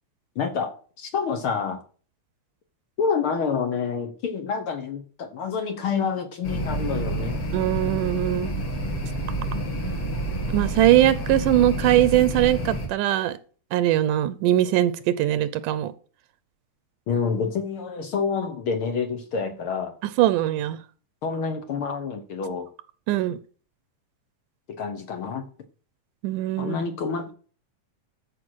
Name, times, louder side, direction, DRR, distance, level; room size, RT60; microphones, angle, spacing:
voice 1, 0.3-1.8 3.0-7.4 17.1-19.9 21.2-22.7 24.7-25.5 26.6-27.3, left 5 dB, 60° left, 8 dB, 1.4 m, -28 dB
sound 1, 6.4-12.9, right 1 dB, 45° left, 3.1 m, -28 dB
voice 2, 7.5-8.5 10.5-13.4 13.7-15.9 20.2-20.8 23.1-23.4 26.2-26.8, right 13 dB, 85° right, 15 dB, 2.2 m, -21 dB
14.0 x 5.5 x 6.3 m, 0.42 s
omnidirectional pair, 3.6 m